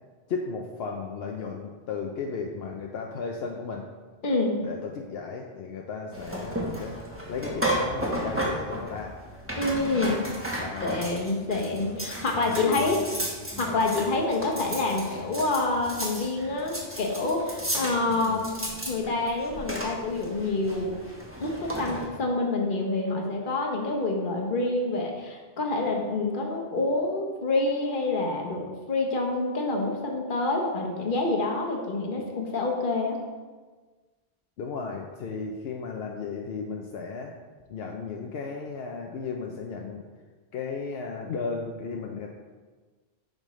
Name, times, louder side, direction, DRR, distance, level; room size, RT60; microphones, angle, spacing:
voice 1, 0.3-3.9 4.6-7.0 7.3-9.2 10.6-11.1 12.5-13.2 13.5-13.8 18.1-18.5 34.6-37.3 37.7-40.0 40.5-42.3, left 5 dB, 75° left, 1 dB, 0.8 m, -35 dB
voice 2, 4.2-4.6 9.6-10.2 10.8-13.0 13.6-18.5 18.9-20.9 21.4-33.2, left 2 dB, 55° left, 1 dB, 1.2 m, -27 dB
sound 1, 6.1-22.1, right 1 dB, 15° right, 1.1 m, -34 dB
8.9 x 5.3 x 3.1 m, 1.4 s
omnidirectional pair, 1.1 m